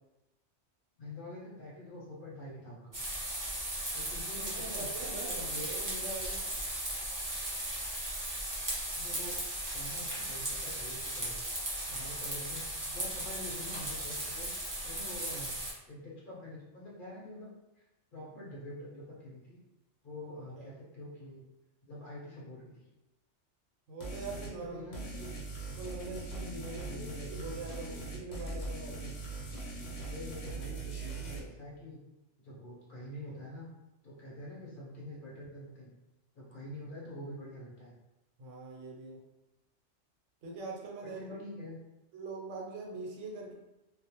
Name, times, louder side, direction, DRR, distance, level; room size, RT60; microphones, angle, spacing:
voice 1, 1.0-3.0 3.9-4.9 5.2-5.6 8.9-9.4 9.7-11.4 11.9-17.5 17.8-17.9 18.1-19.6 20.0-21.4 21.8-22.8 24.6-25.2 26.7-27.5 30.0-32.0 32.4-33.7 34.0-35.9 36.3-37.9 41.0-41.8, left 1 dB, 50° left, -5 dB, 0.7 m, -46 dB
sound 1, 2.9-15.7, right 1 dB, 25° right, 0.4 m, -37 dB
voice 2, 4.5-6.4 20.6-20.7 23.9-25.3 25.7-27.0 27.3-29.1 38.4-39.2 40.4-41.4 42.1-43.5, right 3 dB, 80° right, -1 dB, 1.0 m, -43 dB
sound 2, 24.0-24.5 24.9-31.4, right 3 dB, 80° left, 1.0 m, -41 dB
2.3 x 2.1 x 2.8 m, 0.98 s
omnidirectional pair, 1.3 m